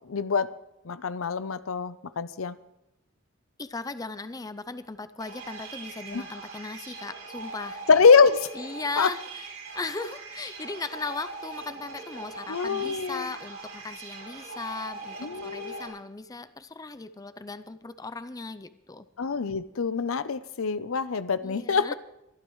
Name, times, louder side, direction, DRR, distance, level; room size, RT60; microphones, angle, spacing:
voice 1, 0.1-0.5 0.9-2.6 6.1-6.2 7.9-8.5 9.0-9.1 12.5-13.3 15.2-15.9 19.2-21.9, left 5 dB, 75° left, 14 dB, 0.6 m, -24 dB
voice 2, 3.6-7.8 8.5-9.5 9.7-15.2 15.4-19.1 21.4-21.9, left 3 dB, 15° left, 12 dB, 0.5 m, -37 dB
sound 1, 5.2-15.9, right 4 dB, 90° right, 6.6 m, -41 dB
23.0 x 12.5 x 3.1 m, 0.89 s
head